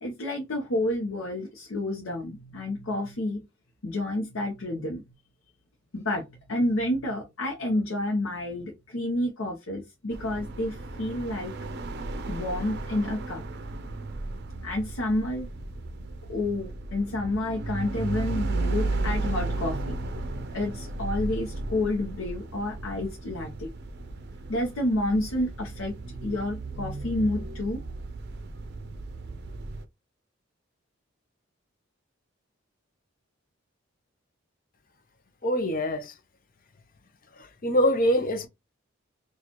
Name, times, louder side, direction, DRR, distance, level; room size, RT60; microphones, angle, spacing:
voice 1, 0.0-3.4 3.8-5.0 5.9-11.5 12.3-13.4 14.6-15.5 16.3-19.8 20.5-23.7 24.5-27.8, left 1 dB, 85° left, 0.8 m, -29 dB
sound 1, 10.1-29.8, right 2 dB, 55° right, 0.5 m, -34 dB
voice 2, 35.4-36.1 37.6-38.5, equal, 45° left, 0.7 m, -24 dB
4.2 x 2.4 x 2.9 m
head